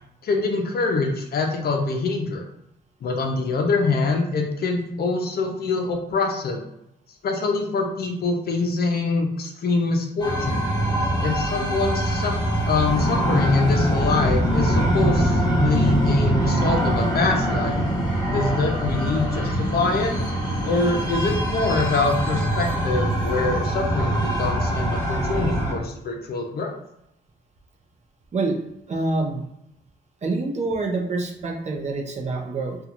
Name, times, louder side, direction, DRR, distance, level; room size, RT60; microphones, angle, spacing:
voice 1, 0.2-2.4 3.0-6.6 7.2-10.6 11.2-12.4 12.7-17.8 18.3-20.2 20.6-26.7, left 3 dB, 50° left, 2 dB, 0.6 m, -24 dB
sound 1, 10.2-25.7, right 1 dB, 20° left, 1.1 m, -23 dB
voice 2, 28.9-29.5 30.2-32.8, right 3 dB, 35° right, 2 dB, 0.6 m, -26 dB
2.9 x 2.3 x 2.5 m, 0.80 s
cardioid pair, 90°, 20 cm